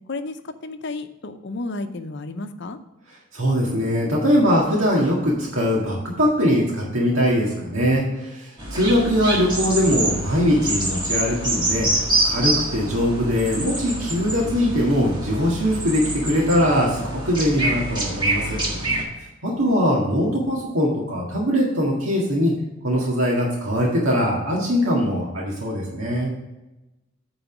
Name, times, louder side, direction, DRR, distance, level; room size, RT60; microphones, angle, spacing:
voice 1, 0.1-2.8 19.6-19.8, left 2 dB, 55° left, 9 dB, 0.6 m, -32 dB
voice 2, 3.3-18.6 19.4-22.5 22.8-26.3, equal, 85° right, -4 dB, 1.8 m, -21 dB
sound 1, 8.6-19.0, right 2 dB, 25° right, 1.7 m, -26 dB
9.0 x 4.0 x 7.2 m, 1.0 s
head